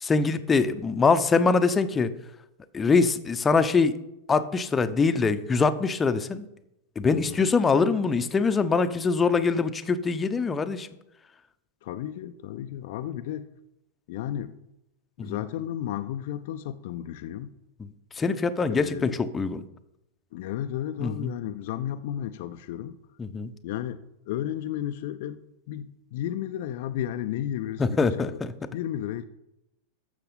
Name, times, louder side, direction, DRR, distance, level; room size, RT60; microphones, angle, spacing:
voice 1, 0.0-2.1 2.7-3.9 4.3-6.4 7.0-10.9 15.2-15.4 18.2-19.6 21.0-21.3 23.2-23.5 27.8-28.5, left 4 dB, 15° left, 0.8 m, -23 dB
voice 2, 7.1-7.5 11.8-13.5 14.1-14.5 15.2-17.5 18.7-19.2 20.3-23.0 23.6-25.4 25.7-28.4 28.7-29.2, left 11 dB, 50° left, 0.5 m, -33 dB
12.5 x 7.2 x 5.5 m
figure-of-eight pair, 90°, 0 cm